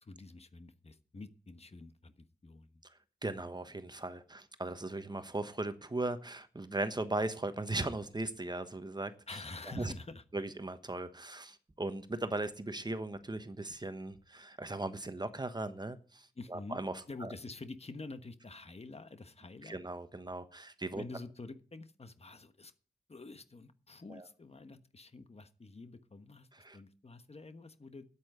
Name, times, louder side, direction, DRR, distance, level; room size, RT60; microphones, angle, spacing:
voice 1, 0.0-2.8 9.3-10.2 16.4-19.8 20.9-22.7 23.1-26.5 26.7-28.0, left 3 dB, 40° left, 10 dB, 1.2 m, -48 dB
voice 2, 3.2-9.1 9.7-9.9 10.3-17.3 19.6-21.0 24.1-24.3 26.5-26.8, right 2 dB, 25° right, 11 dB, 1.1 m, -38 dB
8.6 x 8.6 x 9.4 m, 0.42 s
cardioid pair, 65°, 16 cm